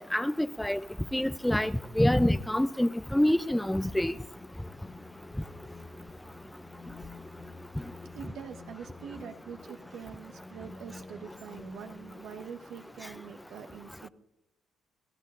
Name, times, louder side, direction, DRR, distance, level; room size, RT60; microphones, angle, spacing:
voice 1, 0.1-0.8 1.1-4.1, left 1 dB, 5° left, 0.4 m, -26 dB
sound 1, 4.3-12.4, left 3 dB, 30° left, 1.8 m, -49 dB
voice 2, 8.1-14.1, right 7 dB, 75° right, 1.3 m, -44 dB
28.0 x 14.5 x 2.5 m
cardioid pair, 90°, 0 cm